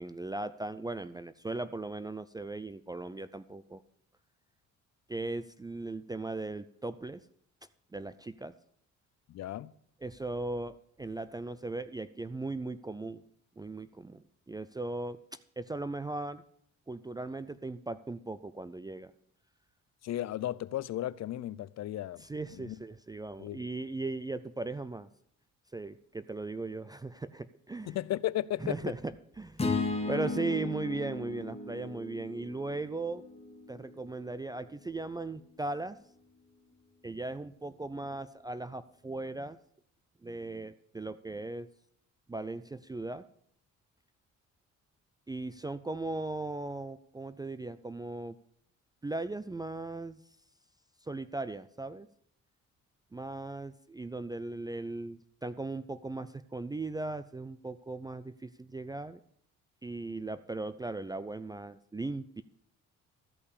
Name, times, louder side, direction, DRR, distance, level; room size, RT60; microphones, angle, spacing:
voice 1, 0.0-3.8 5.1-7.3 7.9-8.5 10.0-13.2 13.6-16.4 16.9-19.1 22.2-25.1 25.7-28.0 28.6-29.7 30.1-33.2 33.7-36.0 37.0-39.6 40.2-41.7 42.3-43.2 45.3-48.4 49.0-50.2 51.0-52.1 53.1-59.2 59.8-62.4, right 2 dB, 15° right, 0.4 m, -38 dB
voice 2, 9.3-9.7 20.0-22.2 22.5-22.8 23.4-23.6 27.9-28.9, left 13 dB, 60° left, 0.5 m, -35 dB
sound 1, 29.6-33.9, left 3 dB, 20° left, 1.4 m, -35 dB
13.5 x 5.4 x 8.2 m
cardioid pair, 90°, 30 cm